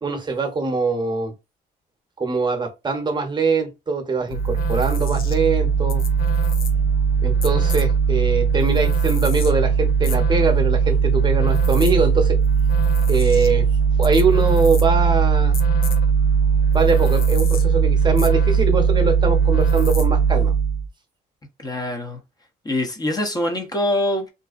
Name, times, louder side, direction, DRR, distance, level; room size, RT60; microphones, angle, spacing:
voice 1, 0.0-1.3 2.2-6.0 7.2-12.4 13.1-13.7 14.0-15.6 16.7-20.5, right 4 dB, 25° right, 0.9 m, -22 dB
sound 1, 4.3-20.9, right 6 dB, 60° left, 0.5 m, -19 dB
voice 2, 21.6-22.2 22.6-24.3, left 1 dB, 20° left, 0.7 m, -24 dB
2.5 x 2.2 x 2.4 m
cardioid pair, 80°, 17 cm